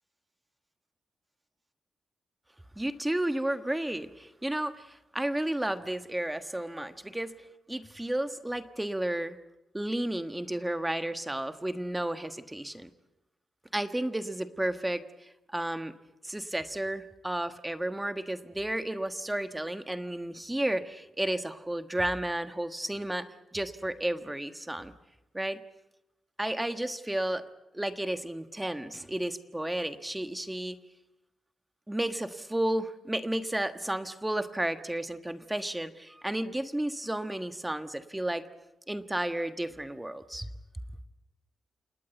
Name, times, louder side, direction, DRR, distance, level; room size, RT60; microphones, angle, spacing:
voice 1, 2.8-7.3 7.7-9.4 9.7-12.9 13.7-15.0 15.5-15.9 16.2-23.3 23.5-24.9 25.3-25.6 26.4-27.4 27.7-30.8 31.9-38.4 38.9-40.5, right 1 dB, 10° right, 9 dB, 1.4 m, -32 dB
28.5 x 19.0 x 8.1 m, 0.96 s
cardioid pair, 95°, 0 cm